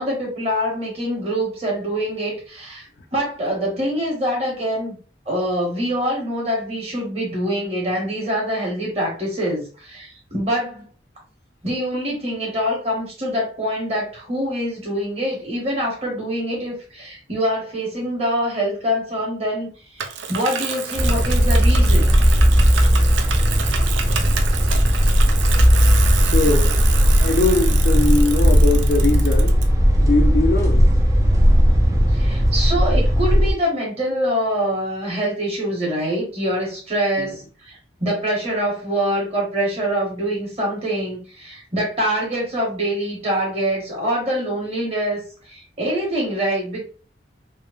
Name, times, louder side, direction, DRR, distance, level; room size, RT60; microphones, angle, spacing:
voice 1, 0.0-5.0 5.3-10.9 11.6-22.1 32.1-46.8, equal, 35° right, 1.0 m, -25 dB
Bicycle, 20.0-29.6, right 7 dB, 85° right, 0.4 m, -29 dB
sound 1, 20.9-33.5, equal, 15° right, 0.3 m, -16 dB
voice 2, 26.2-26.8 27.2-29.6 30.0-30.8 37.2-37.3, left 2 dB, 55° left, 0.4 m, -21 dB
2.8 x 2.0 x 2.4 m
head